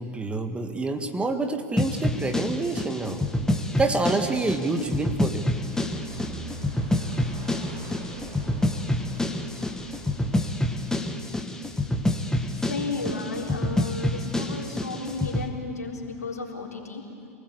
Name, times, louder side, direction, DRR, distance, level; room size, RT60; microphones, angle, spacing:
voice 1, 0.0-3.2 3.8-5.5, right 3 dB, 15° right, 6 dB, 1.8 m, -27 dB
sound 1, 1.8-15.5, left 1 dB, 5° left, 1.9 m, -27 dB
sound 2, 5.6-10.8, right 2 dB, 50° right, 8.0 m, -42 dB
voice 2, 12.5-17.0, left 3 dB, 85° left, -1 dB, 4.0 m, -33 dB
27.5 x 19.5 x 8.6 m, 2.5 s
figure-of-eight pair, 90°, 9 cm